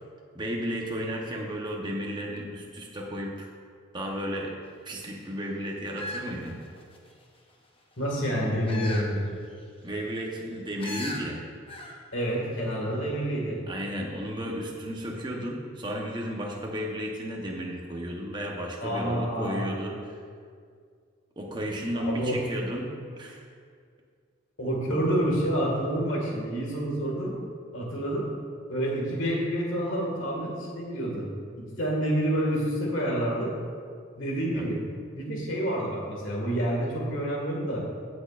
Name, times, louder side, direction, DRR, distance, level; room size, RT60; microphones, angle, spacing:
voice 1, 0.3-3.5 3.9-4.5 4.8-6.6 9.8-11.4 13.7-20.1 21.4-23.4 24.9-25.1 34.5-34.7, equal, 20° right, -1 dB, 1.0 m, -33 dB
sound 1, 5.9-7.1 8.7-9.1 9.5-9.6 10.8-11.2 11.7-12.0 12.3-12.4, left 1 dB, 25° left, 0.8 m, -37 dB
voice 2, 8.0-9.2 12.1-13.6 18.8-19.6 21.9-22.4 24.6-27.3 27.7-28.2 28.7-31.3 31.6-33.5 34.1-34.8 35.1-37.8, right 1 dB, 70° left, -2 dB, 2.0 m, -28 dB
16.5 x 6.3 x 2.5 m, 2.1 s
head